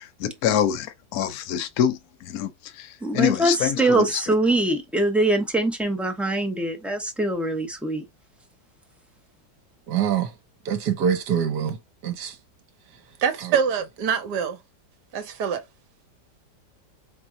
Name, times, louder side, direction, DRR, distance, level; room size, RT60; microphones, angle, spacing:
voice 1, 0.0-4.2, left 10 dB, 65° left, 1.1 m, -26 dB
voice 2, 3.0-3.5 3.8-8.0, right 2 dB, ahead, 0.5 m, -23 dB
voice 3, 9.9-10.3 10.6-12.4 13.2-14.6 15.1-15.6, right 7 dB, 70° right, 1.4 m, -25 dB
4.3 x 3.7 x 2.7 m
omnidirectional pair, 1.9 m